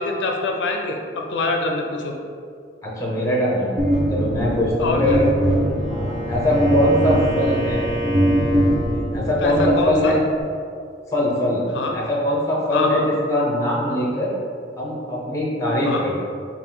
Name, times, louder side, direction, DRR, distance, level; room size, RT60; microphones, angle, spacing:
voice 1, 0.0-2.1 4.8-5.2 9.4-10.2 11.7-12.0 12.7-13.1 15.8-16.0, left 2 dB, 85° left, 2 dB, 0.4 m, -24 dB
voice 2, 2.8-3.7 4.1-5.3 5.9-7.8 9.1-10.2 11.1-11.7 11.9-14.3 14.8-16.2, left 1 dB, 20° left, -4 dB, 0.6 m, -21 dB
sound 1, 3.8-10.4, right 1 dB, 35° right, 0.6 m, -22 dB
Wind instrument woodwind instrument, 5.3-9.2, equal, 85° right, 1.1 m, -29 dB
3.6 x 2.4 x 3.9 m, 2.3 s
head